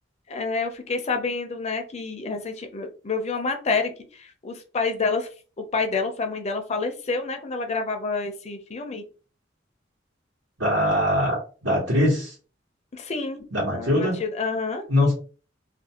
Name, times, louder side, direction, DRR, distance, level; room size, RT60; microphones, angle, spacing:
voice 1, 0.3-5.3 5.6-9.1 12.9-13.4 13.7-14.8, left 4 dB, 35° left, 6 dB, 0.5 m, -28 dB
voice 2, 10.6-12.3 13.5-14.2 14.9-15.1, left 1 dB, 80° right, -8 dB, 1.1 m, -22 dB
2.5 x 2.3 x 2.7 m, 0.37 s
head